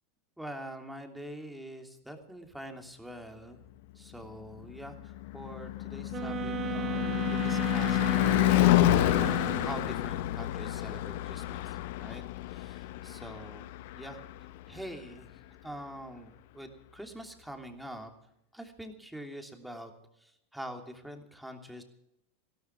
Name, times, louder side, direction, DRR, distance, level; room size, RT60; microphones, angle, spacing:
voice 1, 0.4-3.6 3.9-8.8 9.1-13.6 13.9-14.2 14.7-15.3 15.6-18.1 18.5-19.9 20.2-21.8, right 1 dB, 5° right, 4 dB, 3.1 m, -45 dB
Car passing by / Truck / Engine, 4.5-14.8, left 15 dB, 65° left, 0.7 m, -29 dB
sound 1, 6.1-10.0, right 12 dB, 30° right, 1.3 m, -36 dB
17.0 x 13.0 x 6.1 m, 0.80 s
hypercardioid pair, 100°, 0 cm